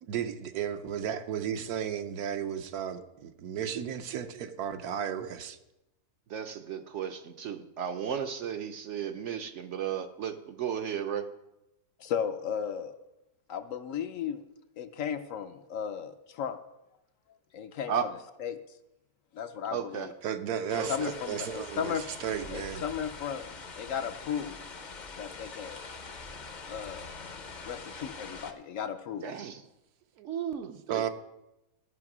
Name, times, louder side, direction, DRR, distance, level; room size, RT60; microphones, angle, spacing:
voice 1, 0.0-5.6 20.2-21.0 21.3-22.8 30.2-31.1, right 8 dB, 80° right, 9 dB, 1.2 m, -34 dB
voice 2, 6.3-11.3 17.9-18.1 19.7-20.1 20.8-21.1 29.2-29.6 30.2-31.1, right 8 dB, 60° right, 8 dB, 0.8 m, -34 dB
voice 3, 12.0-13.0 13.5-14.4 14.8-16.6 17.5-17.9 18.4-18.6 19.3-20.1 20.9-22.0 22.5-24.7 25.1-25.8 26.7-27.1 27.6-29.3, left 8 dB, 65° left, 9 dB, 0.9 m, -35 dB
sound 1, 20.7-28.5, left 4 dB, 40° left, 0.7 m, -44 dB
13.5 x 5.8 x 6.0 m, 0.93 s
omnidirectional pair, 1.6 m